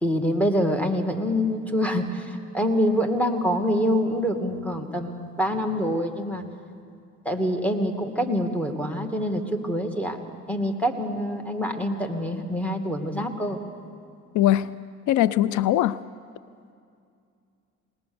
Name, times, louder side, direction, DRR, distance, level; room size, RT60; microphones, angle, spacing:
voice 1, 0.0-6.4 7.3-10.2 10.5-13.6, equal, 5° left, 5 dB, 1.9 m, -25 dB
voice 2, 14.3-14.8 15.1-16.0, left 13 dB, 75° left, 17 dB, 0.5 m, -21 dB
20.5 x 19.0 x 7.0 m, 2.4 s
cardioid pair, 90°, 30 cm